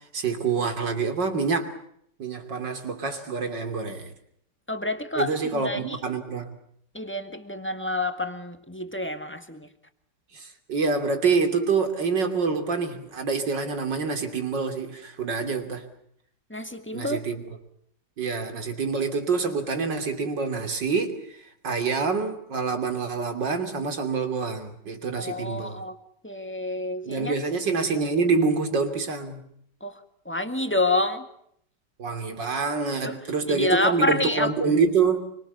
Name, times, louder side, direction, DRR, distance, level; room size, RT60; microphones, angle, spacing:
voice 1, 0.1-1.7 2.2-4.1 5.2-6.5 10.3-15.8 16.9-17.4 18.2-21.2 21.6-25.8 27.0-29.4 32.0-35.2, right 4 dB, 85° right, 6 dB, 3.6 m, -26 dB
voice 2, 4.7-6.0 6.9-9.7 16.5-17.2 25.1-26.0 26.2-27.3 29.8-30.0 30.3-31.2 33.0-33.2 33.5-34.5, left 1 dB, 5° left, 8 dB, 1.9 m, -28 dB
27.0 x 24.5 x 7.0 m, 0.69 s
omnidirectional pair, 1.9 m